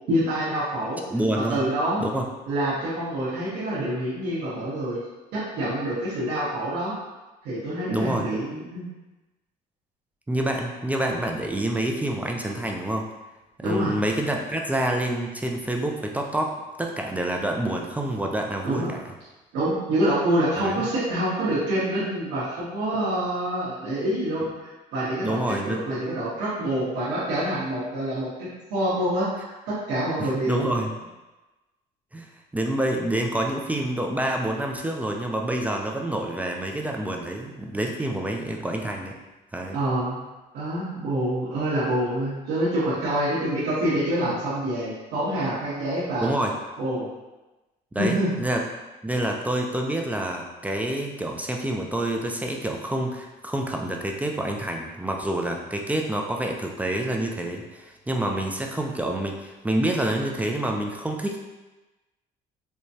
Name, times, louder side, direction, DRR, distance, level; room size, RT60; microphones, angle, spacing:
voice 1, 0.1-1.0 1.5-2.1 2.5-5.0 5.3-6.9 7.4-8.9 13.6-14.0 18.6-18.9 19.5-30.7 39.7-40.2 40.5-46.3 46.8-47.1 48.0-48.3, right 1 dB, 90° right, -10 dB, 1.2 m, -26 dB
voice 2, 1.1-1.6 2.0-2.3 7.9-8.3 10.3-13.1 13.6-19.0 20.6-20.7 25.2-25.8 30.2-30.9 32.1-32.3 32.5-39.1 39.5-39.8 46.2-46.6 47.9-48.7 49.0-61.4, right 1 dB, 10° right, 1 dB, 0.4 m, -27 dB
4.7 x 2.2 x 2.7 m, 1.1 s
cardioid pair, 110°, 17 cm